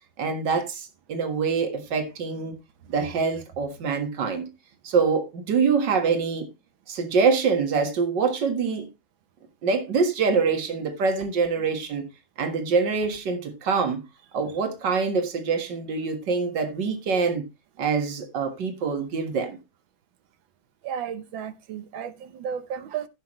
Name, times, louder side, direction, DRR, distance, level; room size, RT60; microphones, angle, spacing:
voice 1, 0.2-2.6 2.9-4.5 4.8-6.5 6.9-8.9 9.6-12.1 12.4-14.0 14.3-17.5 17.8-19.6, right 5 dB, 65° right, 2.3 m, -25 dB
voice 2, 20.8-23.1, right 8 dB, 85° right, 1.7 m, -33 dB
16.0 x 5.8 x 3.1 m
omnidirectional pair, 2.1 m